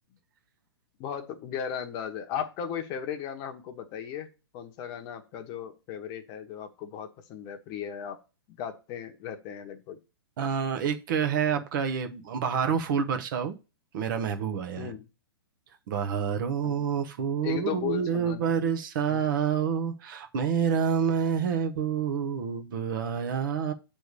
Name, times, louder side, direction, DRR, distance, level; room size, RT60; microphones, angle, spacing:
voice 1, 1.0-8.2 8.5-10.0 14.8-15.0 16.6-16.8 17.4-18.7 19.1-19.2, left 9 dB, 30° left, 6 dB, 1.0 m, -36 dB
voice 2, 10.4-13.6 13.9-14.9 15.9-23.7, right 7 dB, 50° right, 7 dB, 1.0 m, -28 dB
8.1 x 3.4 x 6.6 m, 0.30 s
hypercardioid pair, 150°, 14 cm